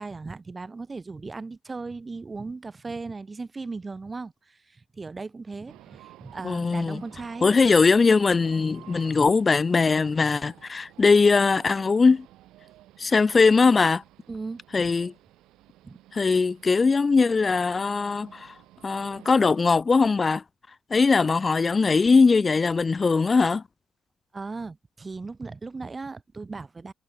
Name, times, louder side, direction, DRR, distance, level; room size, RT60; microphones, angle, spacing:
voice 1, 0.0-7.6 14.3-14.6 15.8-16.0 24.3-26.9, right 3 dB, 25° right, 1.2 m, -37 dB
sound 1, 5.7-19.8, right 15 dB, 90° right, 1.8 m, -52 dB
voice 2, 6.4-7.0 7.4-12.3 13.0-14.0 14.7-15.1 16.1-18.5 18.8-20.4 20.9-23.6, left 4 dB, 30° left, 0.6 m, -20 dB
cardioid pair, 90°, 0 cm